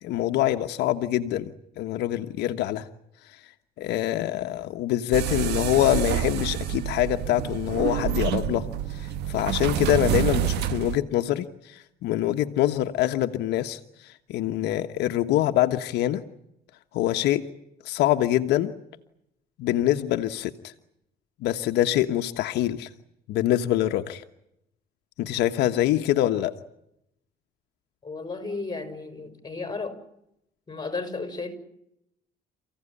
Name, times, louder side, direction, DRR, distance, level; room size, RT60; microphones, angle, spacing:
voice 1, 0.0-2.9 3.8-16.2 16.9-17.5 17.8-18.7 19.6-20.7 21.4-22.9 23.3-24.2 25.2-26.5, left 13 dB, 80° left, 7 dB, 1.3 m, -25 dB
sound 1, 5.1-11.0, right 11 dB, 80° right, 1.4 m, -28 dB
voice 2, 28.0-30.0 30.7-31.6, left 3 dB, 25° left, 9 dB, 6.0 m, -33 dB
29.5 x 16.0 x 9.9 m, 0.81 s
cardioid pair, 110°, 17 cm